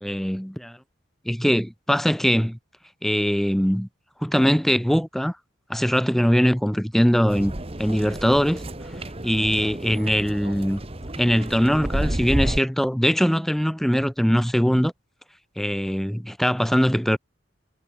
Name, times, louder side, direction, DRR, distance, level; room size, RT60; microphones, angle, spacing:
voice 1, 0.0-0.8 1.3-2.6 3.0-3.9 4.2-5.3 5.7-7.5 7.8-8.6 9.2-10.8 11.2-14.9 15.6-17.2, equal, ahead, 0.9 m, -21 dB
sound 1, 7.3-12.6, right 1 dB, 30° right, 1.5 m, -31 dB
head